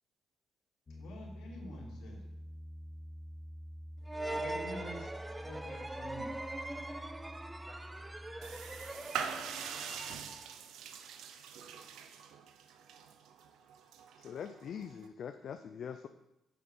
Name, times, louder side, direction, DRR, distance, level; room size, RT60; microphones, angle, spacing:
voice 1, 0.9-2.3 4.3-5.1 5.4-6.3, left 1 dB, 80° left, -1 dB, 2.6 m, -47 dB
Piano, 0.9-8.9, equal, 30° left, 1.0 m, -48 dB
sound 1, 4.1-10.5, right 1 dB, 15° right, 0.6 m, -42 dB
voice 2, 6.7-10.0, equal, 5° left, 0 dB, 1.9 m, -62 dB
sound 2, 8.4-15.1, right 7 dB, 85° right, 0.7 m, -44 dB
voice 3, 14.2-16.1, left 7 dB, 60° left, 8 dB, 0.5 m, -43 dB
8.3 x 7.0 x 5.6 m, 0.91 s
cardioid pair, 90°, 0 cm